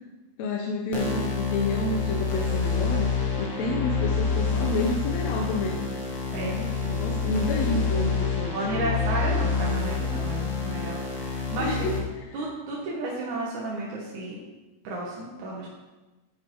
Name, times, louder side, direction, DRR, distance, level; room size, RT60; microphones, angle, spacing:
voice 1, 0.4-5.8 6.9-8.9 11.6-11.9, left 2 dB, 65° left, 0 dB, 2.0 m, -29 dB
sound 1, 0.9-12.0, left 5 dB, 45° left, 2.0 m, -27 dB
voice 2, 6.3-7.5 8.5-11.9 12.3-14.4 14.8-15.7, right 2 dB, 70° right, -4 dB, 2.8 m, -33 dB
10.0 x 9.4 x 4.7 m, 1.2 s
omnidirectional pair, 3.7 m